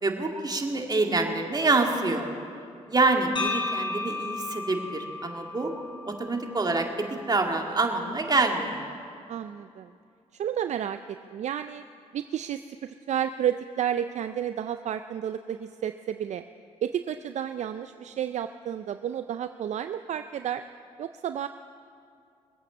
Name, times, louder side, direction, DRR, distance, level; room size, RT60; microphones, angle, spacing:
voice 1, 0.0-2.2 2.9-5.7 6.1-6.9 7.3-8.8, right 3 dB, 30° right, 2 dB, 2.2 m, -26 dB
sound 1, 3.4-7.4, left 3 dB, 35° left, 3.9 m, -34 dB
voice 2, 9.3-9.9 10.3-11.0 11.3-11.8 12.1-16.4 16.8-20.6 21.0-21.5, right 10 dB, 60° right, 10 dB, 0.4 m, -31 dB
21.5 x 8.4 x 7.2 m, 2.4 s
supercardioid pair, 60°, 13 cm